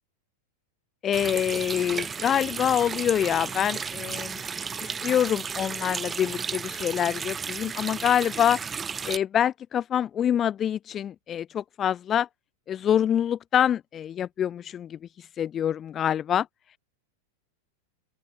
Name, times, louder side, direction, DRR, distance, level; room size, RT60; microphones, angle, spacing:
voice 1, 1.0-4.4 4.8-8.6 9.0-12.3 12.7-16.5, left 9 dB, 25° left, 2.3 m, -26 dB
Water tap faucet, 1.1-9.2, right 6 dB, 15° right, 7.6 m, -34 dB
open air
figure-of-eight pair, 90°, 0 cm